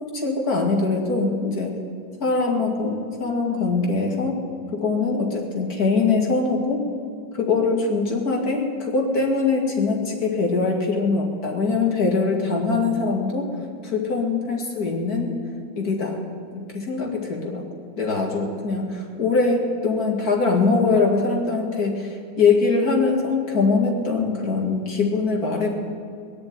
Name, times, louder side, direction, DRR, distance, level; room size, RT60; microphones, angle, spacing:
voice 1, 0.0-1.8 2.2-4.4 4.7-6.9 7.4-13.5 13.8-15.4 15.8-16.2 16.5-17.7 18.0-25.7, left 4 dB, 50° left, 0 dB, 2.7 m, -22 dB
20.5 x 6.9 x 9.6 m, 2.4 s
omnidirectional pair, 2.1 m